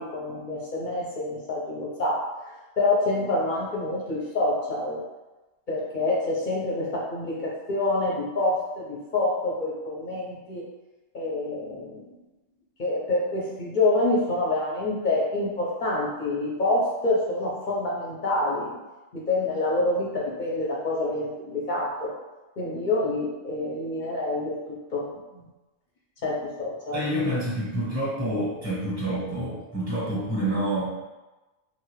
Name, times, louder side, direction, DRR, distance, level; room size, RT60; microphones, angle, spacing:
voice 1, 0.0-2.2 2.8-5.0 5.7-10.6 11.1-12.1 12.8-18.8 19.1-22.1 22.6-25.1 25.3-25.4 26.2-27.0, left 2 dB, 50° left, -4 dB, 0.6 m, -27 dB
voice 2, 26.9-31.0, right 1 dB, 15° right, -7 dB, 0.9 m, -28 dB
2.7 x 2.4 x 3.1 m, 1.1 s
omnidirectional pair, 1.4 m